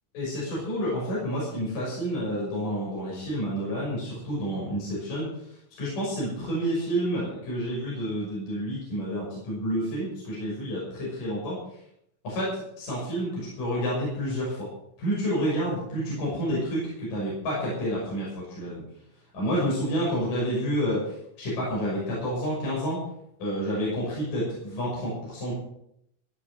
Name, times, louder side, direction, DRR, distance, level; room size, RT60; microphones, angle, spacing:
voice 1, 0.1-5.3 5.8-11.6 12.2-14.7 15.0-18.8 19.3-23.0 23.4-25.5, equal, 40° left, -6 dB, 7.5 m, -29 dB
17.0 x 8.8 x 6.7 m, 0.75 s
omnidirectional pair, 5.9 m